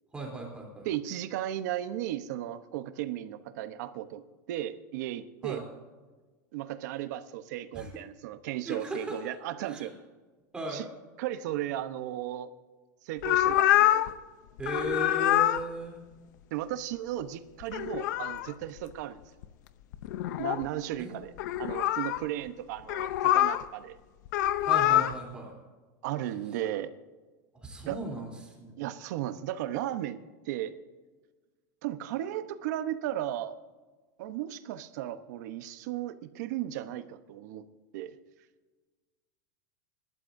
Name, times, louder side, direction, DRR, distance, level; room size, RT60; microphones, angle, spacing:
voice 1, 0.1-0.9 5.4-5.6 7.7-7.9 8.6-9.2 9.6-9.9 10.5-10.9 14.6-16.0 21.0-21.2 24.7-25.5 27.6-28.8, right 2 dB, 10° right, -1 dB, 3.3 m, -37 dB
voice 2, 0.8-4.2 4.5-5.6 6.5-9.9 10.7-10.8 11.2-12.5 13.0-14.0 16.5-19.2 20.4-21.3 21.6-24.0 26.0-26.9 27.9-28.0 28.8-30.2 30.4-30.7 31.8-33.6 34.2-37.7 37.9-38.2, right 12 dB, 70° right, 11 dB, 0.9 m, -35 dB
sound 1, 13.2-14.1 14.6-15.6 17.6-18.5 19.4-19.5 19.9-20.7 21.4-22.2 22.9-23.6 24.3-25.2, left 13 dB, 80° left, 0.7 m, -25 dB
26.5 x 12.5 x 2.7 m, 1.3 s
supercardioid pair, 160°, 10 cm